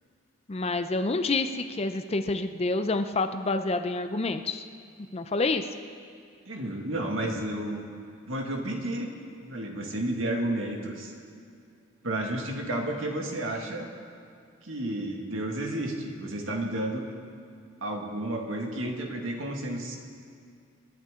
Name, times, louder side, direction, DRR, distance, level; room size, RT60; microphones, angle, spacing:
voice 1, 0.5-4.6 5.1-5.7, left 3 dB, 30° left, 8 dB, 0.5 m, -28 dB
voice 2, 6.5-7.8 8.3-9.1 9.4-11.1 12.0-13.9 14.6-17.0 17.8-20.0, right 1 dB, 70° right, 1 dB, 2.0 m, -31 dB
27.5 x 10.5 x 3.7 m, 2.4 s
head